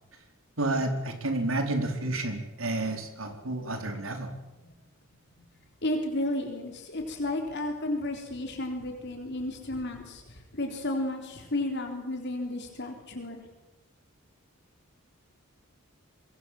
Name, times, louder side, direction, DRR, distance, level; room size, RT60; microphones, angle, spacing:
voice 1, 0.6-4.3, right 2 dB, 75° right, 5 dB, 4.3 m, -30 dB
voice 2, 5.8-10.2 10.5-13.4, left 1 dB, 55° left, 3 dB, 3.7 m, -32 dB
25.5 x 21.5 x 7.7 m, 0.99 s
head